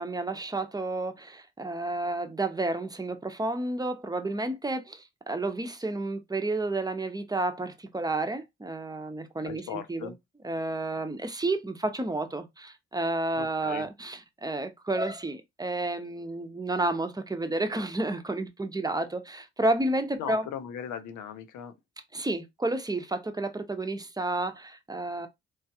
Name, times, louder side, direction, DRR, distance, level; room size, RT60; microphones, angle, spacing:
voice 1, 0.0-10.1 10.4-20.5 22.1-25.3, right 2 dB, 10° right, 0.7 m, -31 dB
voice 2, 9.4-10.2 13.4-13.9 20.2-21.7, left 8 dB, 75° left, 0.6 m, -38 dB
3.0 x 2.4 x 2.8 m
hypercardioid pair, 45°, 31 cm